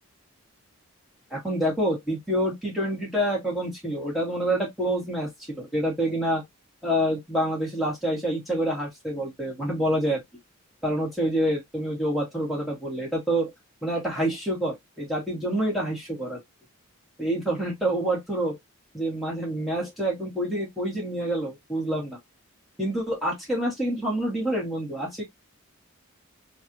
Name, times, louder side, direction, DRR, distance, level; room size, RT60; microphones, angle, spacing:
voice 1, 1.3-6.4 6.8-10.2 10.8-13.5 13.8-16.4 17.2-18.6 18.9-22.2 22.8-25.2, right 1 dB, ahead, 2.0 m, -27 dB
3.9 x 3.0 x 2.8 m
head